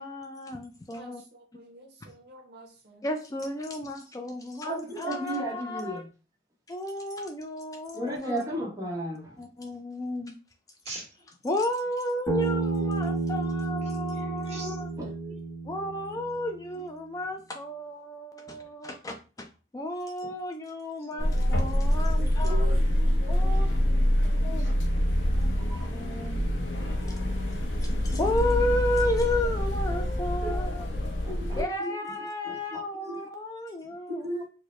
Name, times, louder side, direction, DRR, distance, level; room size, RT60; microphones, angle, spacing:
voice 1, 0.0-1.2 3.0-6.0 6.7-8.4 9.4-10.4 11.4-14.9 15.6-19.5 19.7-22.7 23.3-23.7 24.4-24.7 25.4-25.5 25.9-26.4 27.5-30.9 31.6-34.3, left 1 dB, 20° left, 0.3 m, -33 dB
voice 2, 0.9-3.0, right 1 dB, 60° right, 0.8 m, -51 dB
voice 3, 4.6-6.1 7.9-9.3 15.0-15.1 25.7-25.9 27.0-27.4 30.4-30.5 31.2-31.9 32.2-32.8 33.0-33.3 34.2-34.4, right 1 dB, 20° right, 1.0 m, -34 dB
Bass guitar, 12.3-16.5, right 3 dB, ahead, 1.3 m, -31 dB
voice 4, 13.9-15.4 15.8-16.2 16.5-16.8 21.1-24.9, right 1 dB, 40° right, 1.4 m, -44 dB
sound 1, 21.2-31.6, equal, 85° left, 0.7 m, -26 dB
4.5 x 2.1 x 3.1 m
head